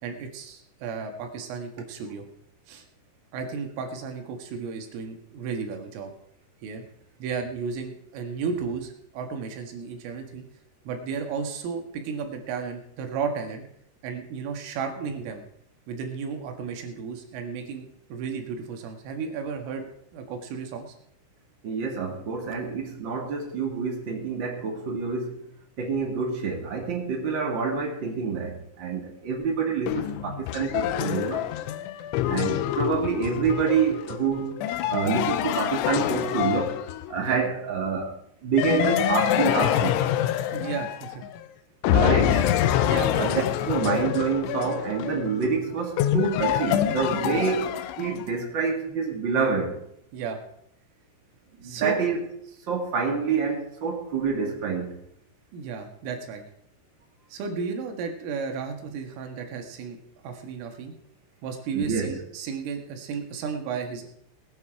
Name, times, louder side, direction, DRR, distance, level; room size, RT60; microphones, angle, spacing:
voice 1, 0.0-2.3 2.7-2.8 3.3-6.1 6.6-6.8 7.2-10.4 10.9-13.6 14.0-15.4 15.9-19.9 20.1-20.9 34.8-35.0 37.2-37.4 40.5-41.2 42.9-43.1 47.3-47.5 50.1-50.4 51.6-52.0 55.5-56.4 57.3-60.0 60.2-60.9 61.4-64.1, right 5 dB, 80° right, 4 dB, 4.3 m, -33 dB
voice 2, 21.6-25.4 25.8-31.5 32.3-34.6 34.9-40.0 41.9-42.5 43.1-47.7 48.0-49.8 51.6-52.2 52.7-54.9 61.7-62.1, right 5 dB, 55° right, 1 dB, 1.3 m, -27 dB
sound 1, 29.9-37.3 38.6-41.4 41.8-48.3, left 11 dB, 80° left, 3.0 m, -26 dB
19.0 x 9.7 x 4.8 m, 0.73 s
omnidirectional pair, 5.8 m